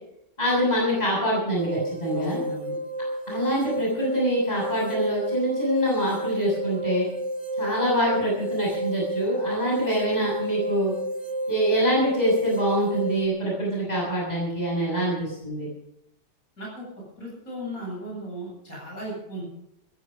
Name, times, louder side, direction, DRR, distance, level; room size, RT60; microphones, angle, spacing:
voice 1, 0.4-2.4 3.3-7.1 7.6-10.9 11.5-15.7, equal, 20° left, -4 dB, 7.0 m, -25 dB
sound 1, 1.6-13.3, right 1 dB, 25° right, 0.8 m, -31 dB
voice 2, 2.1-2.7 16.6-16.9 17.2-19.4, left 1 dB, 50° left, -4 dB, 8.4 m, -36 dB
15.5 x 15.5 x 5.3 m, 0.79 s
omnidirectional pair, 1.9 m